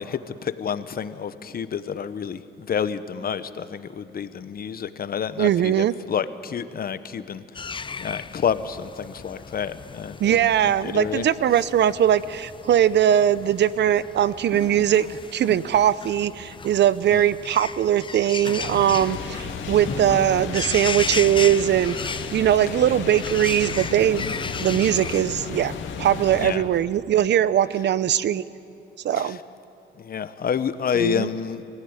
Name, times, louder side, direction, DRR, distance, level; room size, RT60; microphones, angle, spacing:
voice 1, 0.0-11.3 17.1-17.2 26.4-26.7 29.2-29.4 30.0-31.6, left 7 dB, 50° left, 12 dB, 1.0 m, -29 dB
voice 2, 5.4-5.9 10.2-24.2 24.6-28.4 29.0-29.4 31.0-31.3, right 10 dB, 60° right, 17 dB, 0.7 m, -21 dB
sound 1, 7.5-25.2, left 5 dB, 25° left, 0.6 m, -35 dB
sound 2, 18.6-26.5, left 5 dB, 75° left, 2.3 m, -33 dB
23.5 x 16.0 x 9.7 m, 2.7 s
cardioid pair, 90°, 20 cm